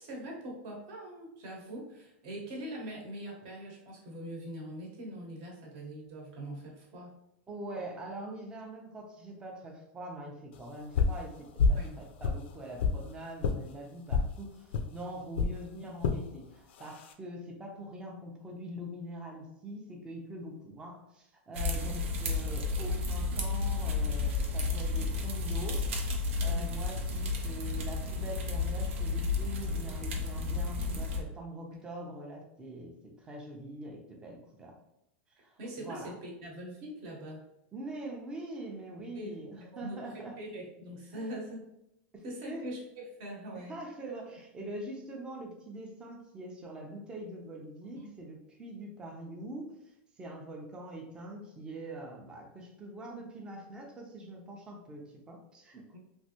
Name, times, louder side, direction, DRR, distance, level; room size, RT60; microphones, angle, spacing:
voice 1, 0.0-7.2 11.8-12.0 26.4-26.8 31.7-31.8 35.6-37.4 39.1-39.4 39.6-41.6 42.2-43.7 48.0-48.1 55.9-56.0, right 1 dB, 45° right, -1 dB, 1.0 m, -42 dB
voice 2, 7.5-34.8 35.4-36.1 37.7-40.4 41.1-41.3 42.1-42.7 43.7-49.8 50.2-56.0, right 1 dB, 15° right, 1 dB, 0.5 m, -43 dB
sound 1, 10.9-11.2 11.6-11.9 12.2-13.0 13.4-13.6 14.1-14.3 14.7-14.9 15.3-15.5 16.0-16.2 16.8-17.1, left 4 dB, 70° left, 0.4 m, -27 dB
sound 2, 21.5-31.2, left 3 dB, 80° right, 0.7 m, -32 dB
3.1 x 2.6 x 2.8 m, 0.85 s
supercardioid pair, 160°, 6 cm